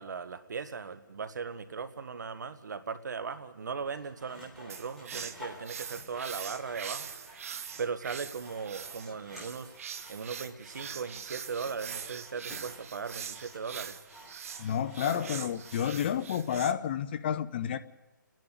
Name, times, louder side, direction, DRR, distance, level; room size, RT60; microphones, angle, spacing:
voice 1, 0.0-7.1 7.8-9.7 10.1-13.9, right 5 dB, 60° right, 12 dB, 1.6 m, -38 dB
Sawing, 3.8-16.3, left 1 dB, ahead, 3.9 m, -51 dB
sound 1, 4.7-16.7, right 7 dB, 45° right, 1.1 m, -43 dB
voice 2, 14.6-17.8, left 9 dB, 30° left, 11 dB, 0.8 m, -30 dB
29.5 x 10.5 x 9.4 m, 1.1 s
hypercardioid pair, 160°, 11 cm